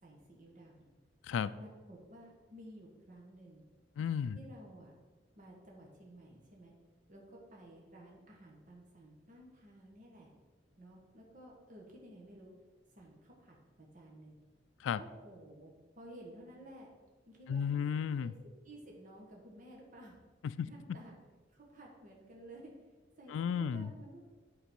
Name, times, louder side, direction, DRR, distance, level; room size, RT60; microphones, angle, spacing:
voice 1, 0.0-0.9 1.6-3.7 4.3-4.9 5.3-6.7 7.1-10.3 10.8-12.5 12.9-14.4 14.9-16.9 17.3-17.8 18.2-18.3 18.6-20.2 20.6-21.2 21.5-22.7 23.2-24.2, right 1 dB, 45° right, -2 dB, 1.4 m, -54 dB
voice 2, 4.0-4.4 14.8-15.0 17.5-18.3 20.4-20.7 23.3-23.9, left 7 dB, 80° left, 16 dB, 0.3 m, -33 dB
8.9 x 4.0 x 5.3 m, 1.3 s
head